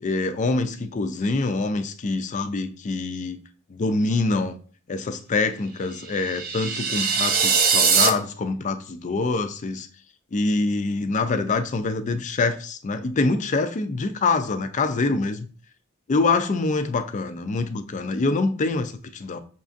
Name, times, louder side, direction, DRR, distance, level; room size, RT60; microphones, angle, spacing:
voice 1, 0.0-3.4 3.7-4.6 4.9-9.9 10.3-15.5 16.1-19.4, left 3 dB, 35° left, 0.4 m, -25 dB
sound 1, 6.1-8.1, right 6 dB, 45° right, 0.5 m, -21 dB
5.9 x 2.5 x 2.5 m
head